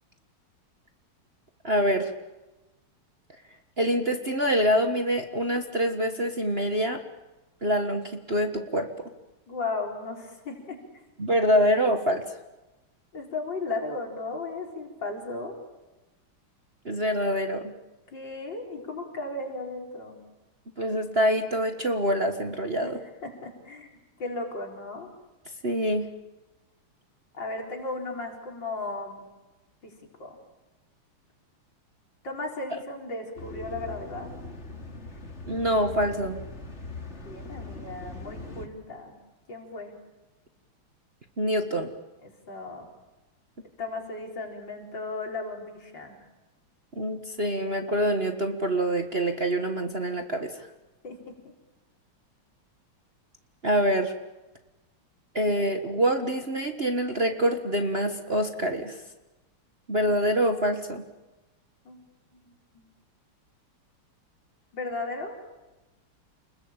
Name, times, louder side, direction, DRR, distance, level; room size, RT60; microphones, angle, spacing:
voice 1, 1.6-2.1 3.8-7.0 7.6-8.9 11.2-12.4 16.8-17.7 20.8-23.0 25.6-26.1 35.4-36.4 41.4-41.9 47.0-50.7 53.6-54.1 55.3-59.0 59.9-61.0, equal, 30° right, 6 dB, 1.6 m, -25 dB
voice 2, 9.5-11.0 13.1-15.5 18.1-20.2 22.8-22.9 23.2-23.9 24.2-25.1 27.3-29.3 29.8-30.4 32.2-34.3 37.2-39.2 39.5-40.0 42.2-42.9 43.8-46.2 51.0-51.5 61.9-62.0 62.4-62.8 64.7-65.4, left 3 dB, 60° left, 1 dB, 5.2 m, -36 dB
sound 1, 33.4-38.7, left 2 dB, 30° left, 3.1 m, -40 dB
29.5 x 21.5 x 8.9 m, 1.1 s
omnidirectional pair, 2.3 m